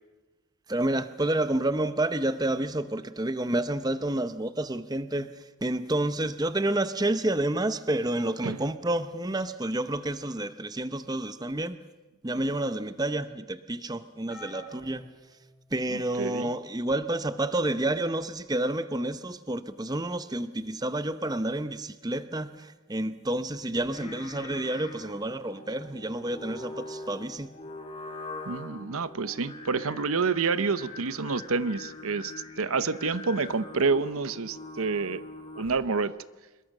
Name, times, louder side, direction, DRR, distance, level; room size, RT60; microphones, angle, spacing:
voice 1, 0.7-11.8 12.2-15.0 15.7-27.5, right 1 dB, 20° right, 11 dB, 0.7 m, -29 dB
sound 1, 14.3-16.1 16.8-17.1 18.4-18.5, left 2 dB, ahead, 5.3 m, -50 dB
voice 2, 15.9-16.5 28.5-35.2 35.6-36.2, right 4 dB, 80° right, 14 dB, 0.8 m, -28 dB
Singing, 23.8-35.9, left 2 dB, 25° left, 3.8 m, -43 dB
26.0 x 22.0 x 6.6 m, 1.2 s
head